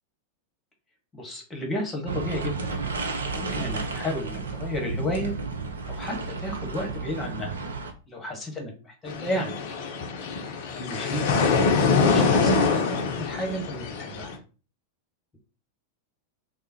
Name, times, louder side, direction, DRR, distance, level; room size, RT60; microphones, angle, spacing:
voice 1, 1.1-2.7 3.3-5.3 5.8-7.5 8.1-9.5 10.6-11.2 11.7-14.3, left 1 dB, 20° left, 2 dB, 1.1 m, -32 dB
sound 1, 2.1-7.9, right 4 dB, 70° right, 0.5 m, -32 dB
sound 2, 9.1-14.4, left 4 dB, 50° left, 0.5 m, -24 dB
3.5 x 2.0 x 2.8 m, 0.36 s
figure-of-eight pair, 90°, 0 cm